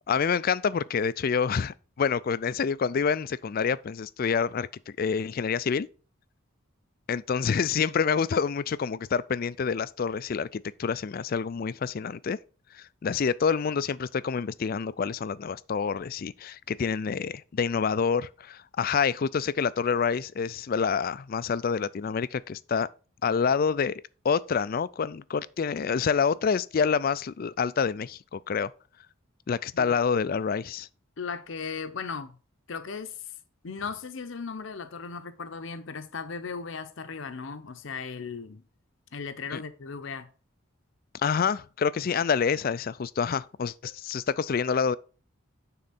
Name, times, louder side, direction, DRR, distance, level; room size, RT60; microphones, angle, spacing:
voice 1, 0.1-5.9 7.1-12.4 12.7-22.9 23.2-28.7 29.5-30.9 39.5-39.6 41.2-45.0, left 6 dB, 45° left, 0.3 m, -27 dB
voice 2, 31.2-32.4 32.7-33.2 33.6-38.6 39.1-40.3, left 5 dB, 60° left, 0.7 m, -37 dB
9.6 x 3.9 x 4.1 m
head